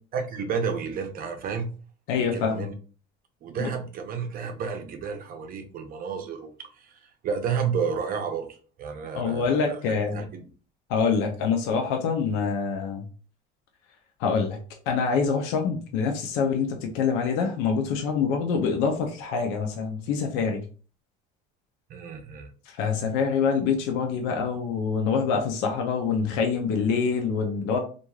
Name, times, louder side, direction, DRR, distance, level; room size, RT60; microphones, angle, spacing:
voice 1, 0.1-1.7 2.2-2.7 3.4-9.6 9.9-10.4 21.9-22.5, right 6 dB, 50° right, 6 dB, 0.6 m, -31 dB
voice 2, 2.1-2.6 3.6-3.7 9.1-10.2 10.9-13.1 14.2-14.6 14.9-20.6 22.7-27.8, left 5 dB, 85° left, 3 dB, 0.6 m, -25 dB
3.0 x 2.5 x 2.3 m, 0.38 s
cardioid pair, 115°, 20 cm